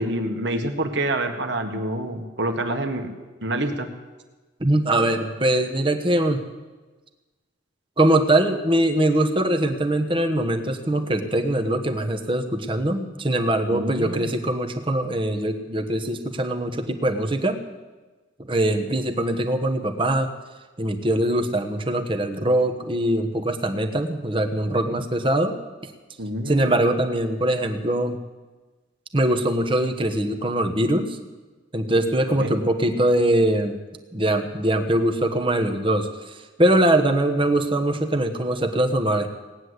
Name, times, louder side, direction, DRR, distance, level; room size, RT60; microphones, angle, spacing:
voice 1, 0.0-3.1 3.4-3.9 13.7-14.4 26.2-26.7 32.4-32.5, right 1 dB, 60° right, 5 dB, 1.7 m, -27 dB
voice 2, 4.6-6.4 8.0-17.6 18.5-20.3 20.8-25.6 26.5-28.2 29.1-31.2 31.7-33.8 34.1-39.3, right 1 dB, 25° right, 6 dB, 1.2 m, -22 dB
18.0 x 9.8 x 8.1 m, 1.2 s
head